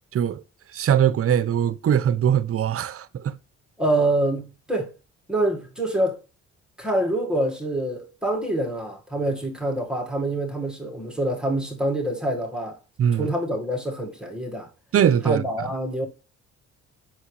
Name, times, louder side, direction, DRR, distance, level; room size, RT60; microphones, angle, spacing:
voice 1, 0.7-3.4 13.0-13.3 14.9-15.4, right 9 dB, 50° right, 0.7 m, -21 dB
voice 2, 3.8-4.9 5.3-6.2 6.8-12.8 13.1-14.7 15.2-16.1, right 1 dB, 5° right, 1.8 m, -26 dB
7.3 x 6.0 x 3.3 m
cardioid pair, 90°, 30 cm